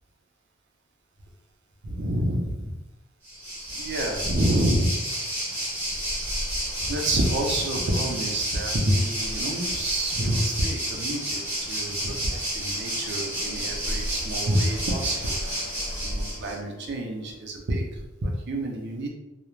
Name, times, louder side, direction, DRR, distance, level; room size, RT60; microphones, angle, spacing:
voice 1, 1.8-2.7 3.7-5.0 6.8-15.3 16.0-19.1, right 1 dB, 60° right, 0 dB, 0.5 m, -28 dB
Waves surf, 3.2-16.6, right 1 dB, 10° right, 0.7 m, -30 dB
Wind instrument woodwind instrument, 13.4-17.5, left 4 dB, 65° left, 1.0 m, -49 dB
2.3 x 2.0 x 3.1 m, 1.0 s
head